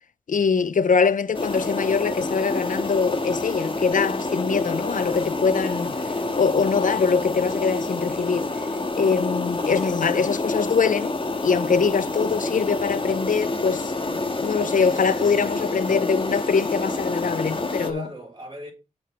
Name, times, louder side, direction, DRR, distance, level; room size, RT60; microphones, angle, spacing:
voice 1, 0.3-6.0 6.4-8.5 9.0-11.1 11.4-18.0, left 5 dB, 75° left, 0.5 m, -23 dB
sound 1, 1.3-17.9, left 2 dB, 40° left, 1.6 m, -28 dB
voice 2, 9.6-10.6 15.7-16.0 17.8-18.7, right 1 dB, 35° right, 4.7 m, -41 dB
6.9 x 5.7 x 7.0 m
wide cardioid pair, 95°, 14 cm